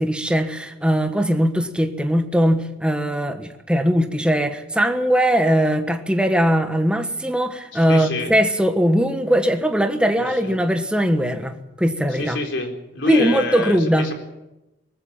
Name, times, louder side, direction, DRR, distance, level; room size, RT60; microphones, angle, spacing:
voice 1, 0.0-12.4 13.1-14.1, equal, 5° right, 1.3 m, -20 dB
voice 2, 7.7-8.3 10.2-10.6 12.1-14.1, left 2 dB, 80° left, 4.0 m, -27 dB
19.5 x 15.5 x 8.8 m
head